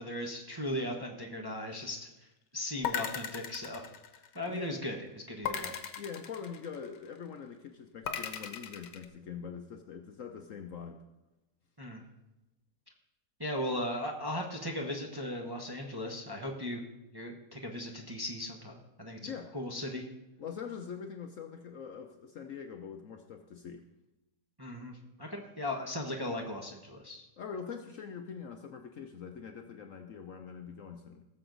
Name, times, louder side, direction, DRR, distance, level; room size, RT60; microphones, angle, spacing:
voice 1, 0.0-2.1 2.5-3.8 4.3-4.9 5.3-5.7 11.8-12.0 13.4-16.8 17.1-20.0 24.6-27.3, left 1 dB, 20° right, 1 dB, 0.8 m, -37 dB
sound 1, 2.8-4.6 5.4-7.1 8.1-9.0, left 8 dB, 80° left, 1.5 m, -37 dB
voice 2, 4.5-4.8 6.0-11.0 19.2-19.5 20.4-23.8 27.4-31.2, left 6 dB, 60° left, 5 dB, 0.9 m, -43 dB
18.5 x 6.9 x 3.9 m, 0.97 s
omnidirectional pair, 1.9 m